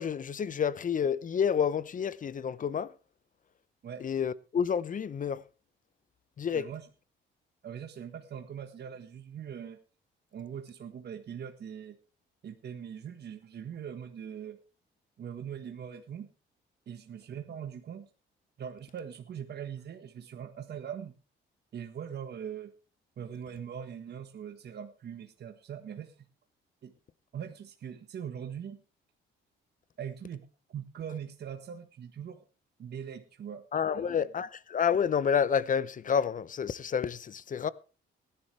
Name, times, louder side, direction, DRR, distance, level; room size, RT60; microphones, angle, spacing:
voice 1, 0.0-2.9 4.0-5.4 6.4-6.7 33.7-37.7, left 7 dB, 40° left, 0.8 m, -29 dB
voice 2, 6.5-6.9 7.6-9.8 10.3-12.0 12.4-14.6 15.2-16.3 16.9-18.1 18.6-21.1 21.7-22.7 23.2-26.3 26.8-26.9 27.3-28.8 30.0-30.5 30.7-32.4 32.8-33.6 33.9-34.2, right 8 dB, 55° right, 1.5 m, -41 dB
19.0 x 11.0 x 3.3 m
cardioid pair, 90°, 20 cm